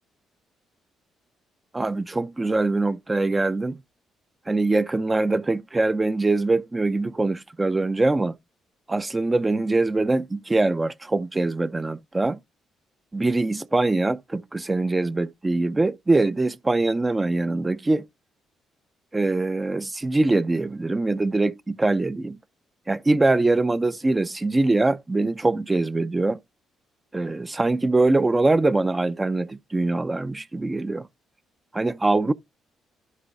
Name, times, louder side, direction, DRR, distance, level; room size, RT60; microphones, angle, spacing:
voice 1, 1.7-3.8 4.5-8.3 8.9-12.4 13.1-18.1 19.1-22.4 22.9-26.4 27.1-31.1 31.7-32.3, right 2 dB, 20° right, 0.4 m, -23 dB
11.5 x 4.3 x 3.5 m
cardioid pair, 90°, 0 cm